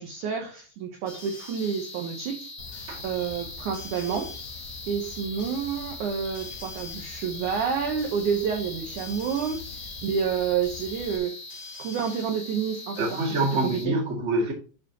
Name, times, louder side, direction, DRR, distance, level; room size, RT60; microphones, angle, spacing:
voice 1, 0.0-4.3 4.9-11.4 11.8-13.4 13.7-14.0, right 7 dB, 70° right, 2.0 m, -29 dB
sound 1, 1.1-13.9, left 2 dB, 40° left, 1.9 m, -42 dB
sound 2, 2.6-11.2, left 5 dB, 70° left, 1.6 m, -43 dB
voice 2, 13.0-14.5, right 2 dB, 25° right, 1.7 m, -26 dB
11.5 x 4.8 x 2.9 m
omnidirectional pair, 4.7 m